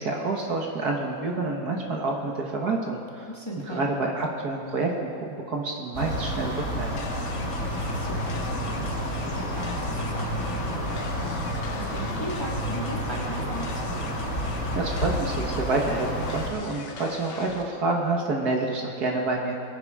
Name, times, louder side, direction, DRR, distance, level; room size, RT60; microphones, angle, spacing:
voice 1, 0.0-3.3 3.7-7.0 14.7-19.5, right 3 dB, 55° right, 0 dB, 1.8 m, -28 dB
voice 2, 3.3-3.8 7.5-14.0, equal, 15° left, -3 dB, 1.5 m, -38 dB
sound 1, 5.9-16.5, equal, 45° left, 3.4 m, -30 dB
sound 2, 7.0-17.6, left 4 dB, 85° left, 1.9 m, -40 dB
22.0 x 9.1 x 4.8 m, 2.4 s
omnidirectional pair, 2.1 m